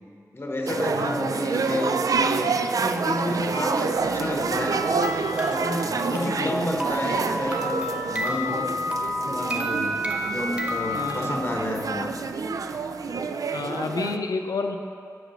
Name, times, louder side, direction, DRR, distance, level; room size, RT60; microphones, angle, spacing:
voice 1, 0.3-4.8 5.4-8.7 9.2-10.0 10.3-12.1, left 1 dB, 35° left, 1 dB, 1.0 m, -30 dB
sound 1, 0.7-14.2, right 4 dB, 70° right, 0.3 m, -28 dB
voice 2, 0.9-1.4 6.1-6.5 10.9-11.4 13.5-14.8, left 4 dB, 75° left, 5 dB, 0.5 m, -30 dB
sound 2, 3.4-13.3, left 3 dB, 85° right, 1.9 m, -48 dB
sound 3, 4.5-11.1, equal, 20° right, 0.9 m, -30 dB
7.8 x 5.0 x 6.3 m, 2.4 s
cardioid pair, 45°, 6 cm